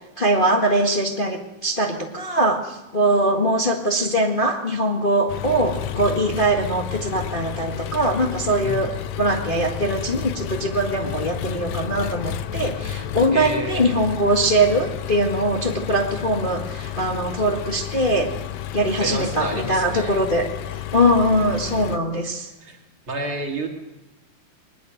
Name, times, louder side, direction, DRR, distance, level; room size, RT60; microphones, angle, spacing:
voice 1, 0.2-8.9 9.2-18.3 18.7-20.4 20.9-22.5, right 1 dB, 35° left, 1 dB, 0.8 m, -22 dB
Engine, 5.3-22.0, left 10 dB, 75° left, 1.6 m, -31 dB
voice 2, 8.6-9.0 13.3-13.9 19.0-20.2 22.6-22.8 23.1-23.7, right 1 dB, 40° right, 1 dB, 3.2 m, -30 dB
21.0 x 20.5 x 6.6 m, 1.0 s
omnidirectional pair, 4.0 m